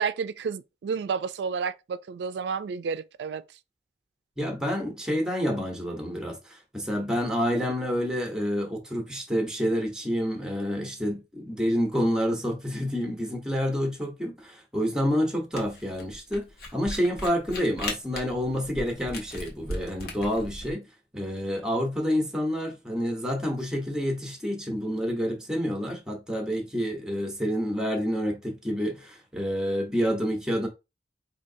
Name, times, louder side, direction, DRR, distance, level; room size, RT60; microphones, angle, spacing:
voice 1, 0.0-3.4, right 6 dB, 70° right, 0.3 m, -30 dB
voice 2, 4.4-16.5 16.7-20.8 21.1-30.7, equal, 5° right, 0.9 m, -28 dB
Camera, 15.6-20.7, left 1 dB, 60° left, 1.1 m, -37 dB
4.3 x 2.7 x 2.6 m
head